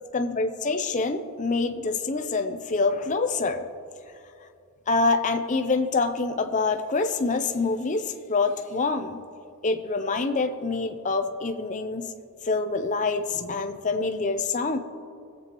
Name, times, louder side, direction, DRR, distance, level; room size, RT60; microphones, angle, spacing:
voice 1, 0.1-3.6 4.9-9.2 9.6-12.1 12.4-14.8, left 3 dB, 35° left, 8 dB, 0.6 m, -26 dB
22.0 x 7.7 x 3.0 m, 2.4 s
head